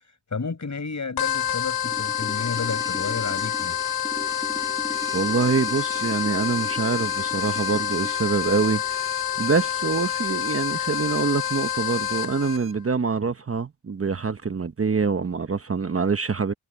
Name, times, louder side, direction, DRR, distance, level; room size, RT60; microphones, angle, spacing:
voice 1, 0.3-3.8, left 4 dB, 45° left, 5.0 m, -31 dB
sound 1, 1.2-12.6, left 10 dB, 70° left, 0.6 m, -27 dB
sound 2, 1.9-10.3 10.6-10.7, right 1 dB, 10° right, 4.1 m, -40 dB
sound 3, 4.9-12.8, right 9 dB, 75° right, 4.2 m, -48 dB
voice 2, 5.1-16.5, right 5 dB, 35° right, 0.9 m, -25 dB
wide cardioid pair, 85°, 39 cm